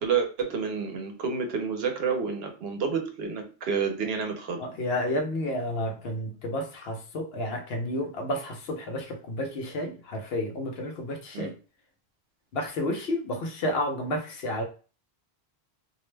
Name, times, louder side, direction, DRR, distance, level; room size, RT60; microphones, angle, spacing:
voice 1, 0.0-4.6 11.3-11.5, right 6 dB, 75° right, 0.9 m, -29 dB
voice 2, 4.6-11.5 12.5-14.6, left 1 dB, 75° left, 0.9 m, -31 dB
2.5 x 2.1 x 3.1 m
omnidirectional pair, 1.1 m